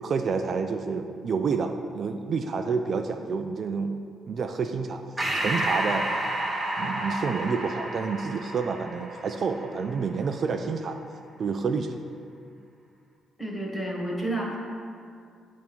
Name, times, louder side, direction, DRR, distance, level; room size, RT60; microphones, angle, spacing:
voice 1, 0.0-3.9 4.3-5.0 5.3-6.2 6.8-11.0 11.4-11.9, right 5 dB, 50° right, 6 dB, 0.4 m, -29 dB
Breathing, 5.2-10.1, right 1 dB, 10° right, 1.2 m, -30 dB
voice 2, 13.4-14.6, right 1 dB, 10° left, -2 dB, 1.5 m, -30 dB
8.6 x 3.6 x 6.0 m, 2.3 s
cardioid pair, 90°, 0 cm